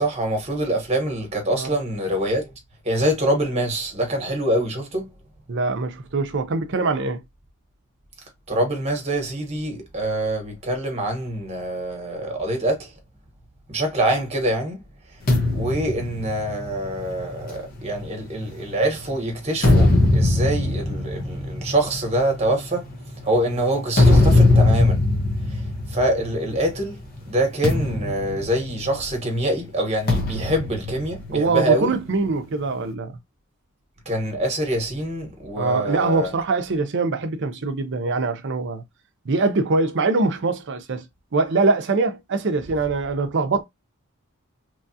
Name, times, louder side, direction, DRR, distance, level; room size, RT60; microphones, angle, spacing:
voice 1, 0.0-2.5 2.8-5.1 8.5-12.9 13.7-14.8 15.5-25.0 25.5-27.0 27.3-31.9 34.0-36.3, right 1 dB, 30° right, 1.1 m, -25 dB
voice 2, 5.5-7.2 31.3-33.2 35.6-38.8 39.2-41.0 41.3-43.6, right 3 dB, 55° right, 0.6 m, -23 dB
sound 1, 15.3-18.9 19.4-26.8 27.1-27.3 27.6-29.2 30.1-31.8, left 2 dB, 45° left, 1.0 m, -21 dB
3.1 x 2.3 x 2.7 m
head